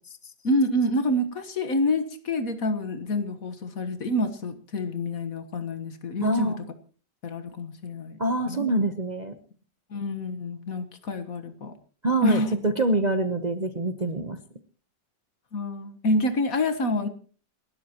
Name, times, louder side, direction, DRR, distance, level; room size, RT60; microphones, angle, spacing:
voice 1, 0.4-6.5 7.2-8.2 8.5-8.7 9.9-11.7 12.2-12.5 15.5-17.1, left 1 dB, 55° left, 10 dB, 1.7 m, -27 dB
voice 2, 6.2-6.6 8.2-9.4 12.0-14.4, right 1 dB, 30° right, 8 dB, 0.8 m, -25 dB
29.0 x 12.5 x 3.0 m, 0.39 s
omnidirectional pair, 1.9 m